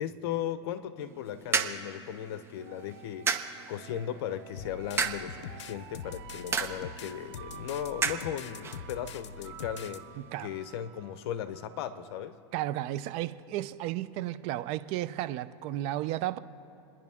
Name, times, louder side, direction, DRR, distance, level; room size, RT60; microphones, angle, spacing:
voice 1, 0.0-3.3 3.7-10.0 10.4-12.4, left 10 dB, 60° left, 12 dB, 1.0 m, -37 dB
sound 1, 1.0-10.4, right 5 dB, 15° right, 0.9 m, -36 dB
sound 2, 2.6-12.3, right 11 dB, 70° right, 1.3 m, -51 dB
sound 3, 4.6-10.0, left 7 dB, 85° left, 0.7 m, -44 dB
voice 2, 10.2-10.5 12.5-16.4, right 14 dB, 45° right, 14 dB, 0.6 m, -33 dB
29.5 x 10.5 x 3.6 m, 2.8 s
supercardioid pair, 130°, 15 cm